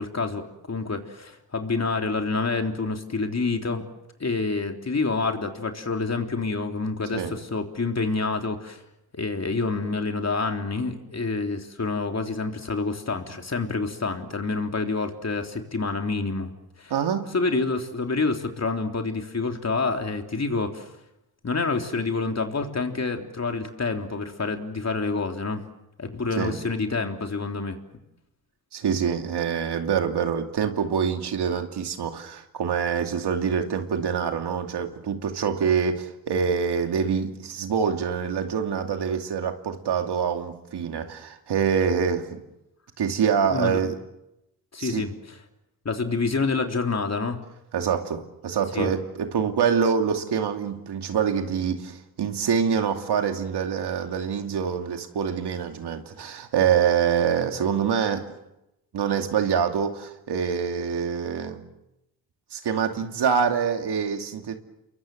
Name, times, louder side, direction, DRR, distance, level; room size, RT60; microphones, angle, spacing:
voice 1, 0.0-3.8 4.2-8.8 9.1-16.5 16.8-16.9 17.3-20.9 21.4-25.6 26.0-27.8 43.5-43.8 44.7-45.4 45.9-47.4 48.7-48.9, left 3 dB, 40° left, 4 dB, 3.5 m, -27 dB
voice 2, 16.9-17.3 26.4-26.6 28.7-42.4 43.0-43.9 44.8-45.0 47.7-58.3 58.9-61.6 62.5-64.6, right 7 dB, 85° right, 5 dB, 2.7 m, -25 dB
29.0 x 23.0 x 7.9 m, 0.88 s
cardioid pair, 75°, 39 cm